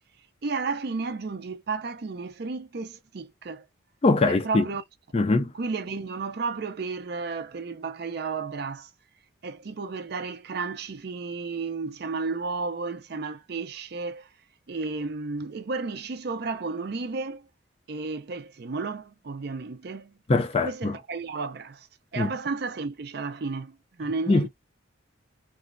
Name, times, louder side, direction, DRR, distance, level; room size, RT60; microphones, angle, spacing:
voice 1, 0.4-3.7 4.3-4.8 5.5-8.9 9.4-14.3 14.7-17.5 17.9-20.2 20.6-21.9 22.1-24.5, right 4 dB, 50° right, 0.5 m, -33 dB
voice 2, 4.0-4.6 5.1-5.5 20.3-21.0 22.2-22.3 24.3-24.5, left 3 dB, 30° left, 0.3 m, -22 dB
2.9 x 2.4 x 2.5 m
head